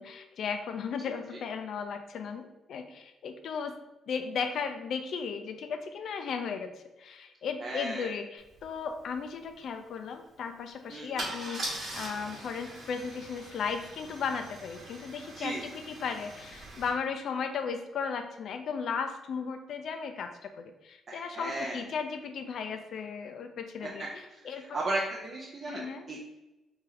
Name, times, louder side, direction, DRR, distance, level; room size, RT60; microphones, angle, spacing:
voice 1, 0.0-3.7 4.1-6.7 7.0-24.8 25.7-26.2, left 6 dB, 65° left, 7 dB, 0.4 m, -36 dB
voice 2, 7.6-8.1 10.9-11.3 15.4-15.6 21.1-21.8 23.8-23.9 24.7-26.2, right 2 dB, 45° right, -3 dB, 0.5 m, -35 dB
Car / Engine starting / Idling, 8.6-8.7 8.9-9.2 11.2-16.9, right 1 dB, 60° right, 1.1 m, -41 dB
3.1 x 2.8 x 3.7 m, 1.0 s
cardioid pair, 90°, 0 cm